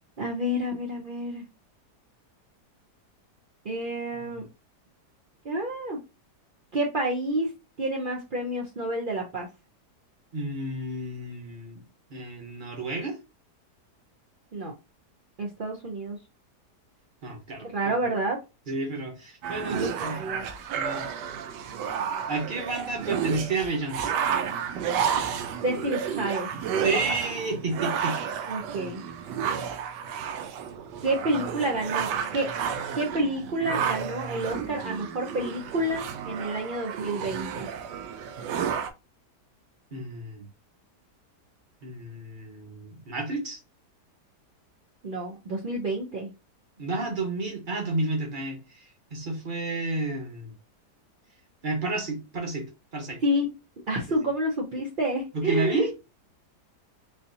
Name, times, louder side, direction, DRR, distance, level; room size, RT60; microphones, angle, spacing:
voice 1, 0.2-1.4 3.6-4.5 5.4-6.0 6.7-7.5 7.8-9.5 14.5-14.7 15.4-16.2 17.6-18.4 19.6-20.5 25.6-26.5 28.5-29.0 31.0-32.5 32.9-37.7 45.0-46.3 53.2-53.5 53.9-55.9, right 1 dB, 65° right, 0.5 m, -29 dB
voice 2, 10.3-11.8 12.1-13.2 17.2-18.0 18.7-20.2 20.7-21.1 22.3-24.1 26.8-28.5 28.7-28.9 39.9-40.4 41.8-43.6 46.8-50.5 51.6-52.7 52.9-53.2 54.1-54.2 55.3-55.9, right 2 dB, 35° right, 1.0 m, -31 dB
sound 1, 19.4-38.9, right 7 dB, 85° right, 1.2 m, -31 dB
4.2 x 2.7 x 2.6 m
omnidirectional pair, 1.8 m